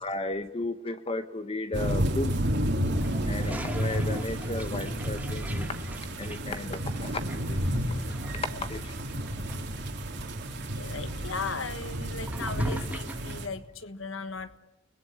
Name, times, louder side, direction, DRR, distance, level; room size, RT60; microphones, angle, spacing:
voice 1, 0.0-2.5 3.3-5.7 6.2-7.6 7.9-8.9, left 2 dB, 30° left, 9 dB, 1.0 m, -34 dB
sound 1, 1.7-13.5, equal, 60° right, 2.9 m, -31 dB
Toilet flush, 2.8-13.5, right 1 dB, 10° right, 1.5 m, -45 dB
voice 2, 10.7-14.6, left 4 dB, 90° left, 12 dB, 1.5 m, -37 dB
30.0 x 21.0 x 8.8 m, 0.98 s
head